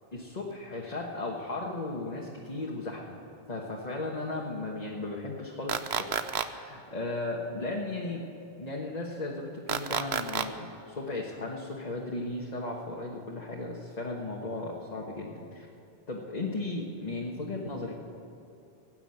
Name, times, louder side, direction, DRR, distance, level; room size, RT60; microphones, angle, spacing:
voice 1, 0.3-3.2 3.5-8.2 8.6-15.7 16.1-17.9, left 2 dB, 40° left, -2 dB, 1.5 m, -36 dB
sound 1, 5.7-6.5 9.7-10.5, right 8 dB, 85° right, 1.0 m, -29 dB
16.0 x 9.2 x 7.8 m, 2.8 s
omnidirectional pair, 1.1 m